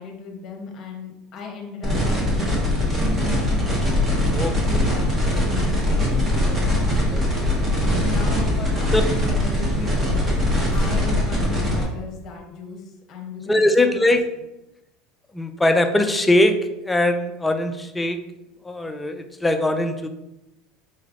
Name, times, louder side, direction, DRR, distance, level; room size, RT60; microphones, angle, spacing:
voice 1, 0.0-2.5 3.0-3.6 4.3-6.7 7.6-10.4 10.7-12.8 13.1-14.1, left 5 dB, 40° left, 2 dB, 0.9 m, -36 dB
sound 1, 1.8-11.8, left 1 dB, 20° right, 1.1 m, -21 dB
voice 2, 4.3-4.9 7.1-7.6 8.9-9.0 13.5-14.2 15.3-18.2 18.6-20.1, left 1 dB, 10° left, 6 dB, 0.3 m, -21 dB
sound 2, 10.3-11.5, left 3 dB, 60° right, 0.7 m, -30 dB
4.5 x 3.2 x 2.5 m, 0.93 s
supercardioid pair, 135°, 0 cm